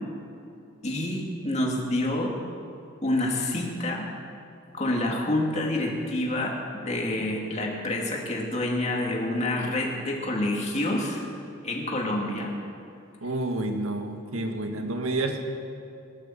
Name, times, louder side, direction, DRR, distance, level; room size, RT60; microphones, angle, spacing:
voice 1, 0.8-2.3 3.0-4.1 4.7-11.2 11.6-12.5, left 1 dB, 35° left, -1 dB, 2.3 m, -27 dB
voice 2, 13.2-15.4, right 2 dB, 90° right, 4 dB, 1.7 m, -29 dB
17.0 x 11.0 x 7.3 m, 2.5 s
head